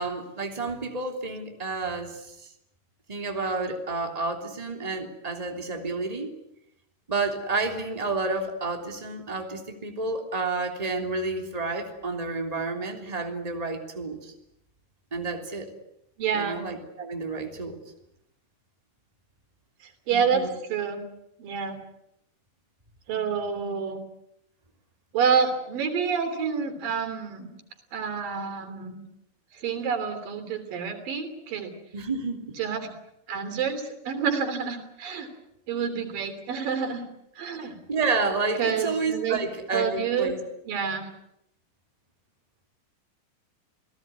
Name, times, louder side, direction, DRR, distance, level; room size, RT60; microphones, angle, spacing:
voice 1, 0.0-2.5 3.1-6.3 7.1-14.3 15.1-15.7 16.3-17.8 20.1-20.5 31.9-32.6 37.9-40.4, right 3 dB, 10° right, 3 dB, 3.0 m, -30 dB
voice 2, 16.2-16.6 20.1-21.0 21.4-21.8 23.1-24.0 25.1-27.5 27.9-29.0 29.6-31.7 32.6-32.9 33.3-35.3 35.7-37.0 37.4-37.8 38.6-39.4 39.7-40.4 40.7-41.1, right 6 dB, 85° right, 9 dB, 4.9 m, -28 dB
29.0 x 18.0 x 9.6 m, 0.81 s
omnidirectional pair, 3.8 m